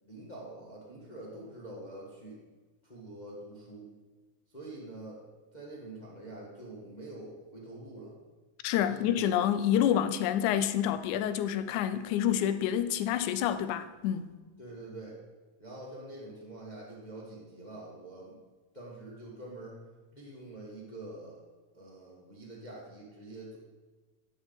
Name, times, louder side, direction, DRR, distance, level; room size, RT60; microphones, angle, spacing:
voice 1, 0.0-2.4 2.8-3.9 4.5-5.3 5.5-8.2 8.8-9.2 9.5-9.9 14.6-15.2 15.6-18.4 18.7-19.8 20.1-21.4 21.7-23.6, right 2 dB, 25° left, 0.9 m, -46 dB
voice 2, 8.6-14.3, left 10 dB, 80° left, 2.0 m, -28 dB
12.5 x 6.4 x 4.0 m
omnidirectional pair, 3.6 m